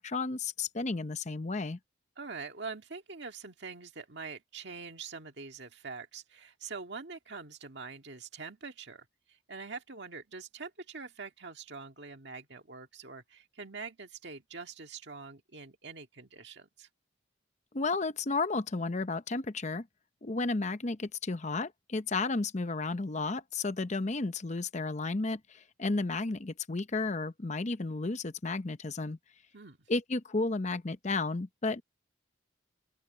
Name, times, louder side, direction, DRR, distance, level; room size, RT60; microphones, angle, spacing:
voice 1, 0.0-1.8 17.7-19.9 20.2-29.2 29.9-31.8, left 3 dB, 35° left, 0.7 m, -33 dB
voice 2, 2.2-9.1 9.5-16.9 29.5-29.8, right 4 dB, 60° right, 1.9 m, -44 dB
open air
head